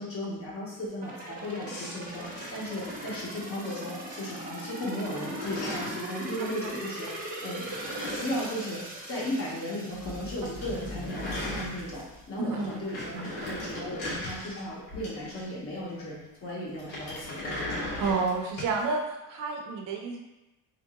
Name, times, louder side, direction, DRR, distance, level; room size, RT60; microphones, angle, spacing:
voice 1, 0.0-7.6 8.1-17.5, left 1 dB, 40° left, -5 dB, 1.2 m, -36 dB
sound 1, 1.0-11.7 12.1-12.2, right 1 dB, 25° right, 0.8 m, -40 dB
sound 2, 1.7-3.8 4.1-4.6 4.9-6.1 7.4-9.5 9.8-9.9 10.2-10.3 10.4-12.2 12.6-15.7 16.8-18.8, left 1 dB, 80° left, 1.4 m, -38 dB
sound 3, 9.9-12.3, left 2 dB, 10° left, 1.0 m, -43 dB
voice 2, 18.0-19.0 19.3-20.2, right 4 dB, 65° right, 1 dB, 0.7 m, -29 dB
3.2 x 2.9 x 3.6 m, 0.99 s
cardioid pair, 135°, 35 cm